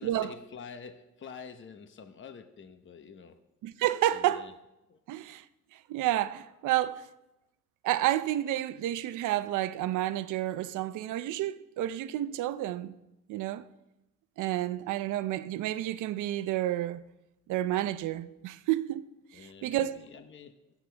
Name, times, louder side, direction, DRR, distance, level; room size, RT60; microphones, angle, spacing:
voice 1, 0.0-3.4 4.1-4.5 4.9-5.0 19.3-20.6, left 6 dB, 40° left, 1.0 m, -47 dB
voice 2, 3.6-4.5 5.1-5.4 5.7-7.1 7.8-13.0 13.3-13.7 14.4-17.0 17.5-19.1 19.3-20.0, right 13 dB, 90° right, 0.7 m, -30 dB
23.0 x 8.4 x 3.4 m
cardioid pair, 90°, 30 cm